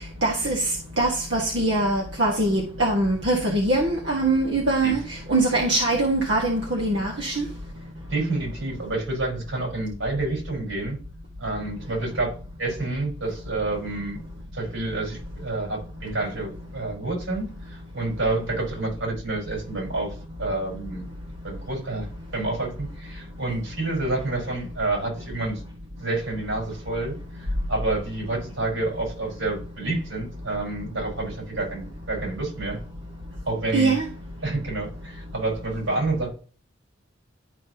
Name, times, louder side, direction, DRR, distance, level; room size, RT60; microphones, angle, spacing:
voice 1, 0.2-0.6 1.0-7.4 33.7-34.1, right 2 dB, 60° right, 1.7 m, -23 dB
voice 2, 8.1-11.0 11.4-14.2 14.5-20.1 20.4-21.1 21.4-25.6 26.0-32.8 33.4-33.9 34.4-36.3, right 2 dB, 85° right, 4.8 m, -29 dB
12.0 x 5.4 x 2.9 m
head